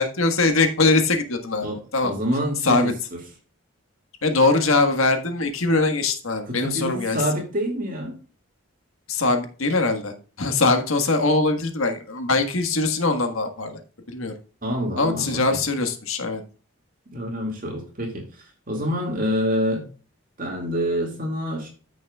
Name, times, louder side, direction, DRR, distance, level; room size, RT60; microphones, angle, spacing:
voice 1, 0.0-2.1 2.6-2.9 4.2-7.2 9.1-13.8 14.1-14.3 15.0-16.4, left 3 dB, 90° left, 6 dB, 1.6 m, -22 dB
voice 2, 1.6-3.2 6.5-8.1 14.6-15.6 17.1-19.9 20.4-21.7, equal, 40° right, 1 dB, 2.2 m, -27 dB
14.5 x 6.2 x 2.4 m, 0.38 s
head